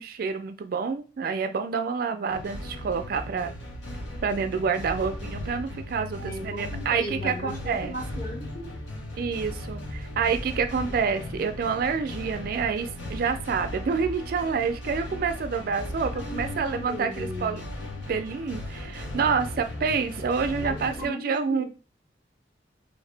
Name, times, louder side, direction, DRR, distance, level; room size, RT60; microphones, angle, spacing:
voice 1, 0.0-3.5 4.2-8.0 9.2-17.6 18.1-21.6, right 5 dB, 50° right, 9 dB, 0.3 m, -28 dB
sound 1, 2.3-21.1, left 1 dB, 85° left, 0.8 m, -37 dB
voice 2, 6.2-8.7 16.1-17.6 20.6-21.7, equal, 45° left, -3 dB, 1.5 m, -37 dB
3.2 x 2.8 x 3.3 m, 0.35 s
head